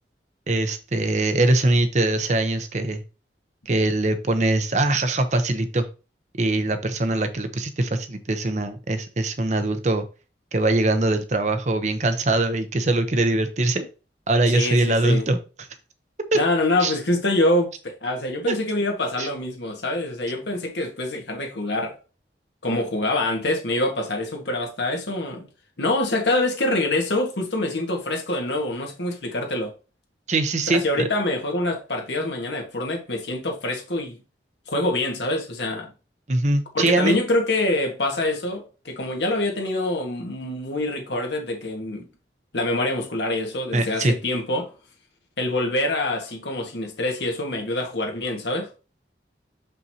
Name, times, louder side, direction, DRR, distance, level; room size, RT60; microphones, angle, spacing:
voice 1, 0.5-3.0 3.7-5.9 6.4-10.0 10.5-13.9 14.3-15.4 16.3-16.4 16.8-16.9 18.5-18.6 19.2-19.3 30.3-31.1 36.3-37.2 43.7-44.1, right 2 dB, 40° right, 0.7 m, -22 dB
voice 2, 14.5-15.3 16.3-22.0 22.6-25.5 25.8-29.7 30.7-34.2 34.7-35.9 36.7-42.0 42.5-44.7 45.4-48.7, left 2 dB, 80° left, 1.6 m, -25 dB
6.3 x 5.4 x 2.8 m
head